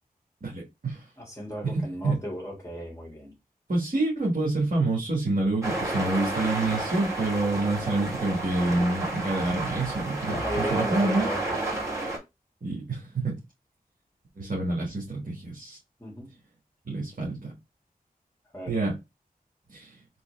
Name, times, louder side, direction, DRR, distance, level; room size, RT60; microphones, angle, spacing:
voice 1, 0.4-1.1 1.6-2.2 3.7-11.3 12.6-13.4 14.4-15.8 16.8-17.5 18.7-18.9 19.7-20.0, right 2 dB, 65° right, 1.6 m, -27 dB
voice 2, 1.2-3.3 7.7-7.9 10.3-11.6 16.0-16.3 18.5-18.8, equal, 15° left, 1.6 m, -35 dB
sound 1, 5.6-12.2, right 2 dB, 20° right, 2.3 m, -31 dB
3.8 x 3.2 x 3.2 m
wide cardioid pair, 55°, 15 cm